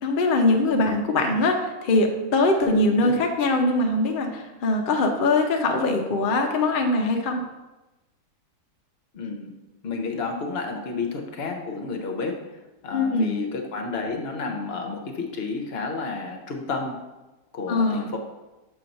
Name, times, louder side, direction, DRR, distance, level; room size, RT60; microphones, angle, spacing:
voice 1, 0.0-7.4 12.9-13.4 17.7-18.1, left 2 dB, 85° left, 3 dB, 0.4 m, -22 dB
voice 2, 9.1-9.5 9.8-12.4 12.8-17.0 17.5-18.2, left 4 dB, 50° left, 3 dB, 0.8 m, -31 dB
6.9 x 2.9 x 5.2 m, 1.1 s
omnidirectional pair, 1.7 m